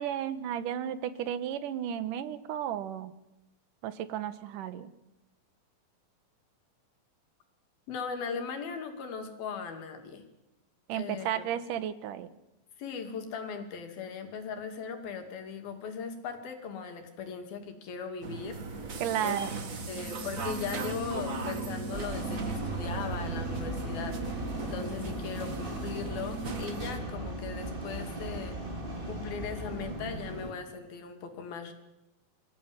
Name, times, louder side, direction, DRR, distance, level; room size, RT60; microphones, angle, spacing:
voice 1, 0.0-3.1 3.8-4.9 10.9-12.3 19.0-19.6, right 10 dB, 70° right, 13 dB, 2.7 m, -33 dB
voice 2, 7.9-10.2 10.9-11.4 12.8-19.4 19.9-24.3 24.6-28.6 29.1-31.7, left 6 dB, 85° left, 6 dB, 4.3 m, -39 dB
sound 1, 18.2-27.0, right 3 dB, 45° right, 1.0 m, -37 dB
sound 2, 21.9-30.5, right 1 dB, 15° right, 2.9 m, -38 dB
25.0 x 15.5 x 9.8 m, 0.94 s
omnidirectional pair, 4.1 m